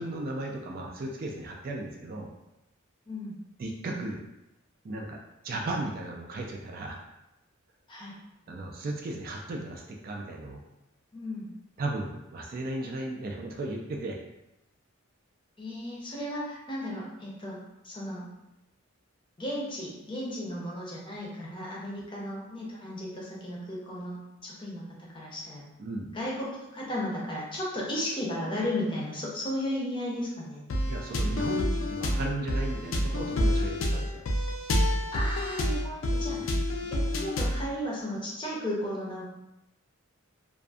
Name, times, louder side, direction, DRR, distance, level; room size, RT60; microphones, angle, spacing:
voice 1, 0.0-2.3 3.6-4.2 4.8-5.2 5.4-7.0 8.5-10.6 11.8-14.2 25.8-26.1 30.8-34.2 36.3-36.5, right 2 dB, 45° right, 0 dB, 0.3 m, -35 dB
voice 2, 3.1-3.4 7.9-8.1 11.1-11.5 15.6-18.3 19.4-25.7 26.1-30.7 35.1-36.5 36.8-39.2, left 1 dB, 25° left, -4 dB, 0.6 m, -35 dB
sound 1, 30.7-37.7, left 1 dB, 70° left, 0.4 m, -28 dB
2.5 x 2.4 x 2.3 m, 0.92 s
head